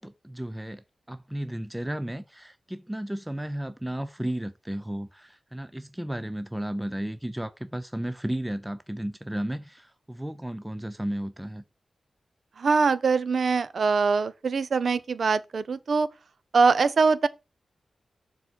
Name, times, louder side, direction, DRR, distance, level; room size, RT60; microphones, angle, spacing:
voice 1, 0.0-11.6, right 1 dB, 5° right, 0.5 m, -34 dB
voice 2, 12.6-16.1 16.5-17.3, right 4 dB, 65° right, 0.7 m, -23 dB
6.9 x 4.0 x 6.2 m
wide cardioid pair, 95°, 0 cm